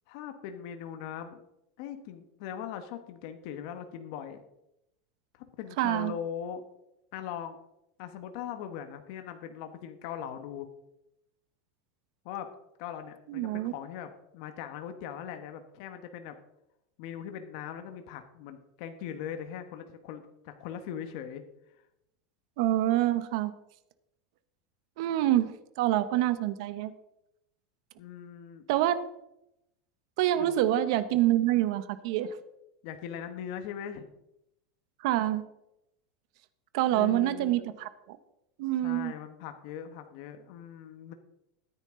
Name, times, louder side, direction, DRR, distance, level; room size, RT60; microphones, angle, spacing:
voice 1, 0.1-1.4 1.8-4.4 5.3-6.6 7.1-7.6 8.0-10.7 12.2-12.5 12.8-16.4 17.0-21.4 28.0-28.7 30.3-30.6 32.8-34.1 36.9-37.6 38.8-41.1, left 9 dB, 55° left, 8 dB, 1.2 m, -40 dB
voice 2, 5.8-6.1 13.3-13.7 22.6-23.5 25.0-26.9 28.7-28.9 30.2-32.4 35.0-35.4 36.7-38.2 38.6-39.1, right 13 dB, 60° right, 13 dB, 0.9 m, -26 dB
13.5 x 9.6 x 3.8 m, 0.83 s
supercardioid pair, 150°, 3 cm